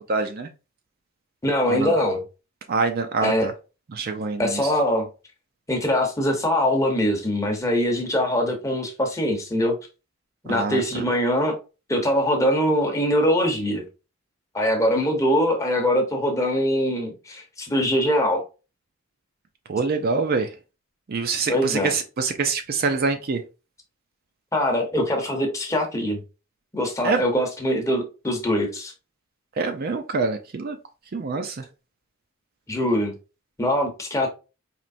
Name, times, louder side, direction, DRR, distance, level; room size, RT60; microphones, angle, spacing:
voice 1, 0.1-0.5 1.7-1.9 2.7-3.5 3.9-4.7 10.5-11.0 19.7-20.5 21.1-23.4 27.0-27.2 29.6-30.8 31.1-31.6, right 4 dB, 40° right, 0.4 m, -25 dB
voice 2, 1.4-2.2 3.2-3.5 4.4-5.1 5.7-9.8 10.4-11.6 11.9-13.8 14.5-18.4 21.5-21.9 24.5-26.2 26.7-28.9 32.7-33.1 33.6-34.3, equal, 15° left, 0.8 m, -22 dB
4.4 x 3.1 x 2.6 m
head